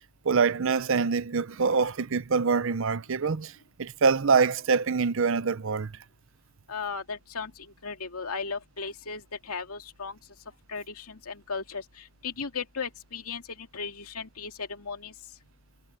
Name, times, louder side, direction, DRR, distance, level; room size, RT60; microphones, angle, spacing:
voice 1, 0.2-3.5 3.8-5.9, right 5 dB, 60° right, 0.7 m, -25 dB
voice 2, 6.7-7.5 7.8-10.1 10.7-11.8 12.2-13.4 13.7-15.1, left 5 dB, 90° left, 2.5 m, -36 dB
head